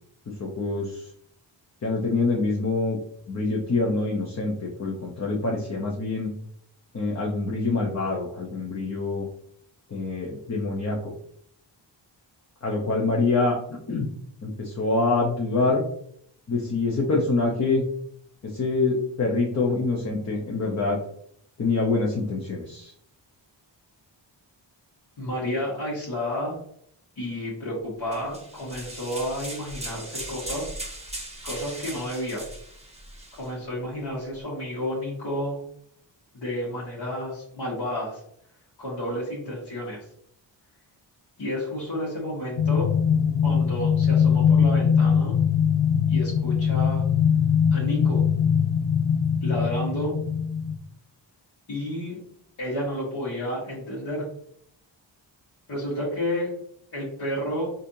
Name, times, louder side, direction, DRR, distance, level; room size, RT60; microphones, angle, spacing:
voice 1, 0.4-1.0 1.8-3.0 3.3-6.3 6.9-9.3 9.9-11.1 12.6-13.5 13.9-14.1 14.4-15.8 16.5-17.9 18.4-21.0 21.6-22.9, left 3 dB, 35° left, -2 dB, 0.7 m, -25 dB
voice 2, 25.2-26.6 27.2-30.8 31.4-32.4 33.3-35.6 36.3-38.2 38.8-40.0 41.4-42.9 43.4-45.4 46.1-47.0 47.7-48.2 49.4-50.1 51.7-52.2 52.6-54.3 55.7-56.5 56.9-57.7, equal, 60° left, -8 dB, 1.4 m, -31 dB
sound 1, 28.1-33.5, right 1 dB, 15° right, 0.9 m, -38 dB
sound 2, 42.6-50.8, left 7 dB, 85° left, 0.6 m, -21 dB
4.2 x 2.5 x 2.7 m, 0.67 s
wide cardioid pair, 85°, 45 cm